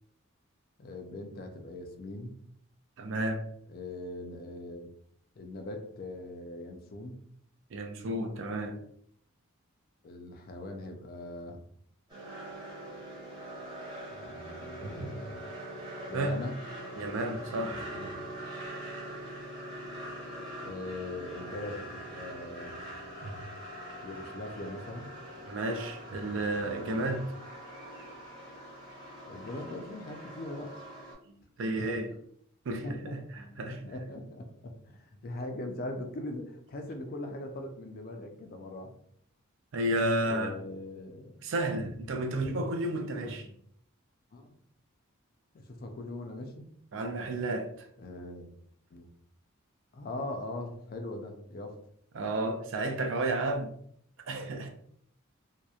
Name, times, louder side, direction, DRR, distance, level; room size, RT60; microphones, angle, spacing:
voice 1, 0.8-2.3 3.7-4.9 5.4-7.2 10.0-11.6 14.1-15.2 16.1-16.5 17.9-18.1 20.6-22.8 24.0-25.1 26.3-27.2 29.3-30.7 31.8-31.9 32.8-33.1 33.7-38.9 40.2-41.4 43.2-43.5 44.3-44.6 45.5-46.7 48.0-48.5 48.9-49.1 49.9-51.8, left 2 dB, 45° left, 0.4 m, -41 dB
voice 2, 3.0-3.4 7.7-8.8 14.8-15.2 16.1-16.4 17.0-18.1 23.2-23.4 25.4-27.2 31.3-32.1 32.7-33.8 39.7-40.6 41.4-43.5 46.9-47.9 52.1-53.7 54.3-54.7, right 1 dB, 60° right, 0.4 m, -32 dB
sound 1, 12.1-31.1, right 1 dB, 20° right, 0.8 m, -43 dB
2.8 x 2.0 x 2.3 m
head